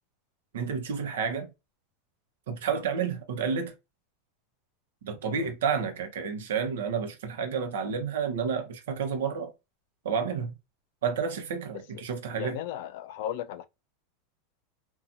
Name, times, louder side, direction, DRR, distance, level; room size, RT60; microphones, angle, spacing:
voice 1, 0.5-1.5 2.5-3.7 5.0-9.5 10.0-10.5 11.0-12.6, right 6 dB, 90° right, 0.8 m, -30 dB
voice 2, 12.3-13.7, left 11 dB, 60° left, 0.3 m, -36 dB
2.8 x 2.3 x 2.5 m
supercardioid pair, 155°, 0 cm